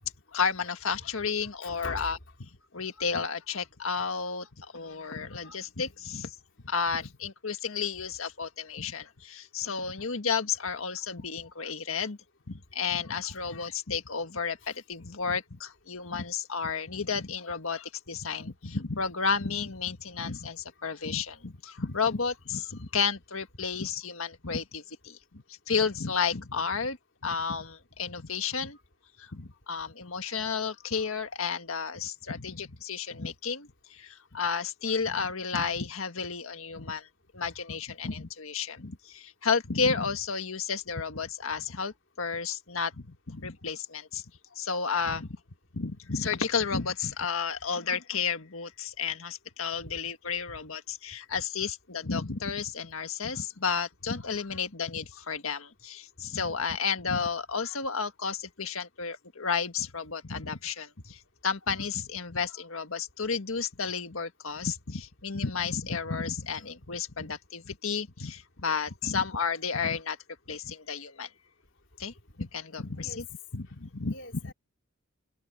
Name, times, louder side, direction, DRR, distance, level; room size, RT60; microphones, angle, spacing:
voice 1, 0.3-2.2 2.7-6.4 6.6-12.2 12.5-27.0 27.2-28.8 29.2-37.1 37.3-44.2 44.5-45.4 45.7-70.2 70.5-71.3 72.0-73.3 73.5-74.1, left 5 dB, 80° left, 1.6 m, -32 dB
voice 2, 1.6-2.2 49.8-49.9 68.6-68.7 69.0-69.1 73.0-73.2 74.1-74.5, left 2 dB, 60° left, 3.8 m, -41 dB
head